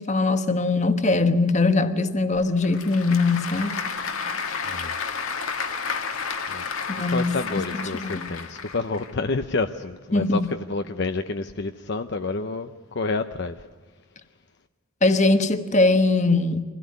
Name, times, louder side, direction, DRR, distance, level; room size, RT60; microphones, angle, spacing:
voice 1, 0.0-3.8 6.9-7.6 8.0-8.2 10.1-10.4 15.0-16.6, left 3 dB, 35° left, 1.2 m, -21 dB
Applause / Crowd, 2.4-9.1, left 5 dB, 80° left, 1.9 m, -31 dB
voice 2, 6.5-13.6, left 3 dB, 55° left, 0.7 m, -29 dB
25.0 x 16.5 x 9.5 m
head